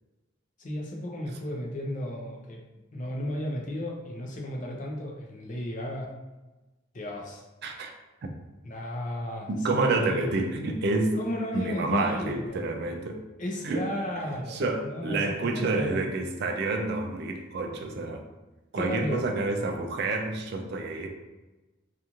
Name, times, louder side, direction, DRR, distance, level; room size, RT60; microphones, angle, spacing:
voice 1, 0.6-2.6 2.9-6.1 6.9-7.4 8.6-10.4 11.1-12.6 13.4-16.0 18.8-19.2, equal, 40° left, -1 dB, 0.5 m, -34 dB
voice 2, 9.5-11.2 11.5-13.2 13.6-13.8 14.5-18.2 18.7-21.1, right 3 dB, 50° right, 3 dB, 0.4 m, -28 dB
2.8 x 2.5 x 2.4 m, 1.1 s
head